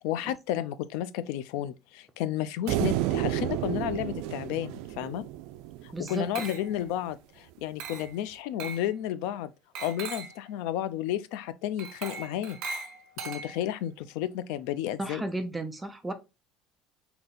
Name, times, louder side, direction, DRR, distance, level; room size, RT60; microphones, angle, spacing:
voice 1, 0.0-5.2 5.8-9.5 9.8-12.6 13.2-15.2, left 11 dB, 85° left, 0.4 m, -32 dB
sound 1, 2.7-6.1, right 14 dB, 80° right, 0.3 m, -31 dB
voice 2, 5.9-6.5 15.0-16.1, right 1 dB, 5° right, 0.5 m, -34 dB
Glass, 6.1-6.9 7.8-8.2 8.6-8.9 9.8-10.4 11.8-13.8, right 4 dB, 60° right, 1.1 m, -39 dB
3.9 x 2.8 x 3.8 m
cardioid pair, 165°, 0 cm